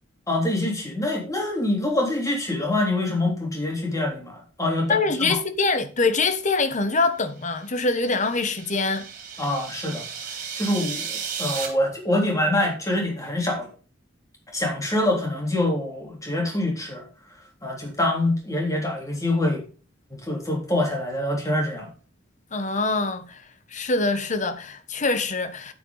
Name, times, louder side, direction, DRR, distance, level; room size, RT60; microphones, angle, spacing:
voice 1, 0.3-5.4 9.4-10.1 10.6-11.1 11.4-13.7 14.5-17.0 17.6-19.6 20.2-21.9, left 1 dB, 15° left, 3.5 m, -25 dB
voice 2, 4.9-9.1 22.5-23.4 23.7-25.7, left 3 dB, 40° left, 1.2 m, -24 dB
sound 1, 7.5-11.7, right 6 dB, 40° right, 3.3 m, -35 dB
9.2 x 9.1 x 3.9 m
head